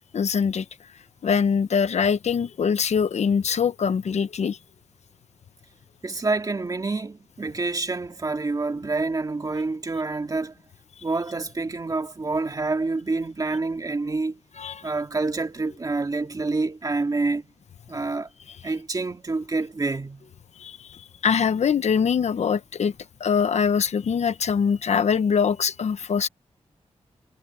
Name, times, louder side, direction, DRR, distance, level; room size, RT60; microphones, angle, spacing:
voice 1, 0.1-0.6 1.2-4.6 14.6-14.8 20.6-20.8 21.2-22.9 23.2-26.3, left 6 dB, 70° left, 0.9 m, -23 dB
voice 2, 6.0-10.6 11.0-14.4 14.8-17.5 17.9-18.3 18.6-20.3, right 3 dB, 30° right, 2.5 m, -27 dB
wide cardioid pair, 130°, 12 cm